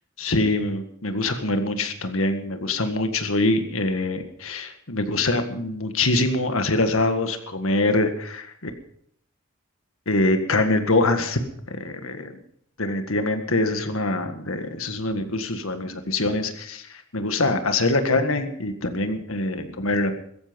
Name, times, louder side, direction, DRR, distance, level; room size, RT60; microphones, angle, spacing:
voice 1, 0.2-8.7 10.1-11.4 11.7-12.3 12.8-20.1, left 2 dB, 80° left, 7 dB, 1.8 m, -24 dB
16.5 x 14.0 x 5.3 m, 0.68 s
head